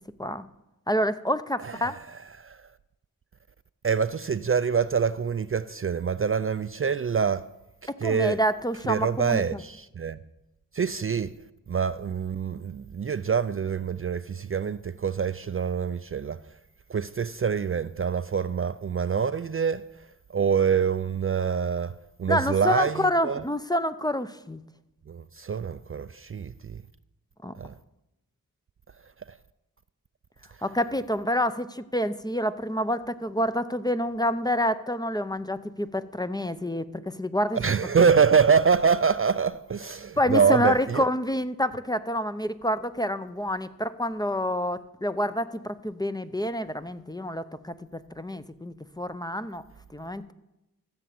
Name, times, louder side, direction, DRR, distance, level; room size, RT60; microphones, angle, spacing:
voice 1, 0.9-2.0 8.0-9.6 22.3-24.6 27.4-27.5 30.6-37.6 40.2-49.6 49.9-50.3, equal, 10° left, 0.6 m, -28 dB
voice 2, 1.6-2.0 2.4-2.6 3.8-7.5 8.0-8.4 8.9-10.2 10.7-11.3 11.7-16.4 16.9-19.8 20.3-23.4 25.1-26.8 27.6-27.7 37.5-41.0, right 6 dB, 40° right, 0.4 m, -25 dB
14.5 x 6.9 x 7.7 m
cardioid pair, 60°, 36 cm